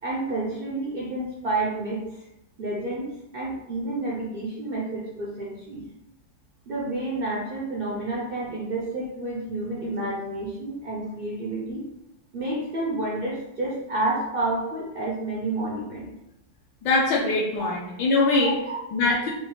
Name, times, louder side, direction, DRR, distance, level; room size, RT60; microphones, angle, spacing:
voice 1, 0.0-2.0 2.6-3.1 3.3-5.8 6.7-11.8 12.3-16.1 17.6-17.7 18.3-18.8, right 2 dB, 70° right, -4 dB, 0.5 m, -30 dB
voice 2, 16.8-18.5 18.9-19.3, left 3 dB, 70° left, -5 dB, 1.3 m, -22 dB
5.0 x 2.6 x 3.6 m, 0.88 s
omnidirectional pair, 2.0 m